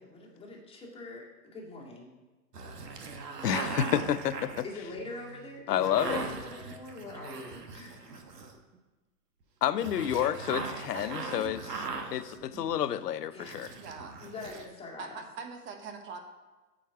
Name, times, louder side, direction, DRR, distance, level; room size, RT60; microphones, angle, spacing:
voice 1, 0.0-2.1 4.6-8.2 13.3-13.6 14.2-15.2, left 2 dB, 10° left, -3 dB, 2.0 m, -44 dB
sound 1, 2.5-8.7 9.7-13.1 13.4-14.6, right 4 dB, 85° right, 1.3 m, -40 dB
voice 2, 3.4-4.3 5.7-6.2 9.6-11.6 12.1-13.7, left 10 dB, 80° left, 14 dB, 0.7 m, -29 dB
voice 3, 10.9-11.8 13.8-14.1 15.0-16.2, right 5 dB, 25° right, 5 dB, 1.1 m, -43 dB
8.7 x 5.2 x 4.6 m, 1.2 s
hypercardioid pair, 125°, 47 cm